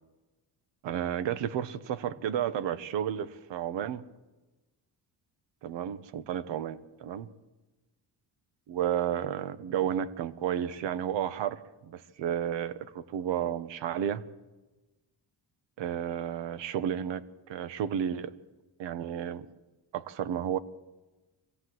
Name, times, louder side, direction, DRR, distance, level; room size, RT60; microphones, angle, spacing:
voice 1, 0.8-4.0 5.6-7.3 8.7-11.6 11.9-14.2 15.8-18.3 18.8-19.5 19.9-20.6, right 9 dB, 90° right, 13 dB, 1.2 m, -32 dB
24.5 x 16.0 x 7.9 m, 1.2 s
cardioid pair, 155°, 43 cm